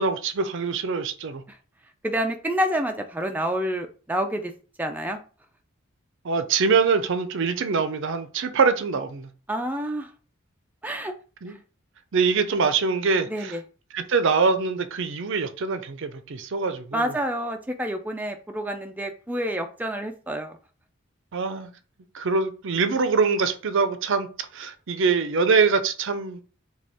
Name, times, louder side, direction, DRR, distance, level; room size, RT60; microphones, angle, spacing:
voice 1, 0.0-1.4 6.2-9.3 11.4-11.5 12.1-13.6 13.9-17.1 21.3-21.7 22.1-26.4, right 4 dB, 60° right, 0.5 m, -24 dB
voice 2, 2.0-4.5 4.8-5.2 9.5-10.1 10.8-11.1 11.5-11.6 13.3-13.6 16.9-20.6, equal, 10° right, 0.3 m, -28 dB
5.0 x 2.3 x 3.4 m
head